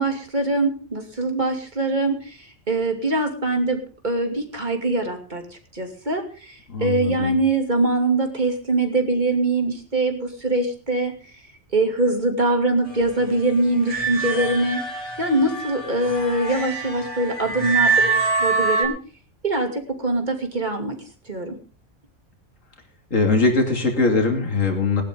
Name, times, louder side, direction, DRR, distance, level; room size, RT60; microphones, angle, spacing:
voice 1, 0.0-11.1 11.7-14.8 15.2-18.9 19.4-21.5, right 2 dB, 35° right, 4 dB, 2.8 m, -23 dB
voice 2, 6.7-7.4 23.1-25.0, left 3 dB, 75° left, 3 dB, 2.9 m, -21 dB
sound 1, 13.9-18.9, right 4 dB, 25° left, 3.6 m, -24 dB
20.0 x 11.5 x 3.8 m, 0.36 s
omnidirectional pair, 1.3 m